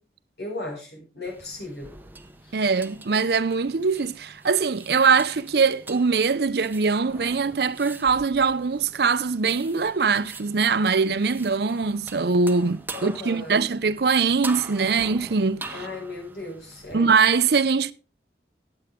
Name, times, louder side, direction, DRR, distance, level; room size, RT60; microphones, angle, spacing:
voice 1, 0.4-1.9 2.4-2.6 12.9-13.7 15.7-17.1, left 2 dB, 70° left, 6.5 m, -36 dB
sound 1, 1.3-17.0, right 3 dB, 10° right, 0.8 m, -43 dB
voice 2, 2.5-15.7 16.9-17.9, right 5 dB, 60° right, 0.6 m, -22 dB
18.0 x 7.9 x 3.7 m
head